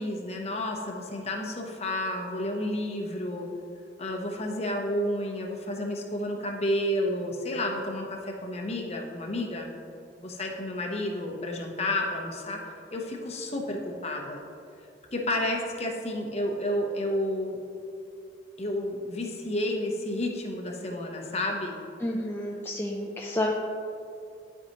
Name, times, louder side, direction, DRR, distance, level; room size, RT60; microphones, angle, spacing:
voice 1, 0.0-3.5 4.0-9.7 10.2-12.6 12.9-14.4 15.1-17.6 18.6-21.8, left 1 dB, 35° left, 1 dB, 0.8 m, -31 dB
voice 2, 22.0-23.5, left 1 dB, 10° left, -2 dB, 0.4 m, -30 dB
11.5 x 4.5 x 2.9 m, 2.5 s
head